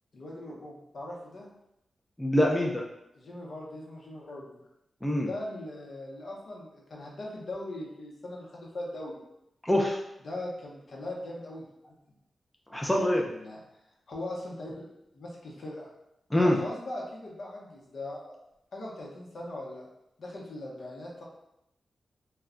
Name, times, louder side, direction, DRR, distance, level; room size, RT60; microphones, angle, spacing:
voice 1, 0.1-1.5 3.1-4.6 5.2-9.2 10.2-11.9 13.2-13.6 14.1-15.9 16.4-18.4 18.7-19.9 20.2-21.2, left 1 dB, 65° left, -3 dB, 0.8 m, -40 dB
voice 2, 2.2-2.8 5.0-5.3 9.6-10.0 12.7-13.2 16.3-16.6, left 1 dB, 10° left, -1 dB, 0.4 m, -24 dB
2.3 x 2.1 x 3.6 m, 0.84 s
cardioid pair, 85°, 0 cm